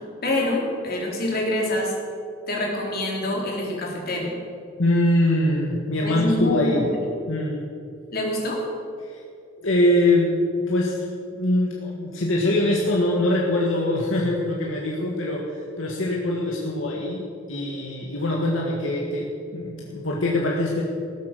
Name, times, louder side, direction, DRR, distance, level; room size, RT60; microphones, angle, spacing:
voice 1, 0.2-1.9 2.5-4.4 6.0-6.9 8.1-8.6, left 1 dB, 50° left, -2 dB, 3.4 m, -25 dB
voice 2, 4.8-6.8 7.3-7.6 9.0-9.2 9.6-11.1 11.4-17.2 17.5-20.8, left 1 dB, 75° left, -2 dB, 1.7 m, -23 dB
18.0 x 8.2 x 6.6 m, 2.5 s
head